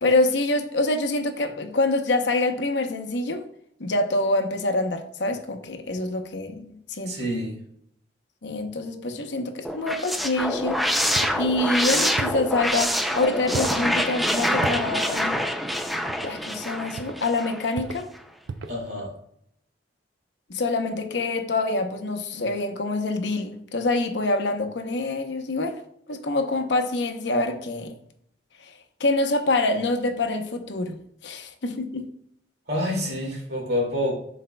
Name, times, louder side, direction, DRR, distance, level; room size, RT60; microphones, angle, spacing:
voice 1, 0.0-3.5 3.8-7.2 8.4-15.4 16.2-18.1 20.5-25.8 26.1-27.9 29.0-31.0 31.2-32.1, left 2 dB, 70° left, 0.7 m, -26 dB
voice 2, 7.0-7.6 18.7-19.1 32.7-34.1, left 1 dB, 60° right, 2.3 m, -27 dB
sound 1, 9.6-17.7, equal, ahead, 0.3 m, -26 dB
sound 2, 11.1-11.4 12.2-12.5 13.5-13.8 14.6-14.9 16.1-16.4 17.0-17.2 17.7-18.1 18.5-18.8, right 4 dB, 85° right, 0.5 m, -33 dB
11.0 x 4.2 x 2.2 m
head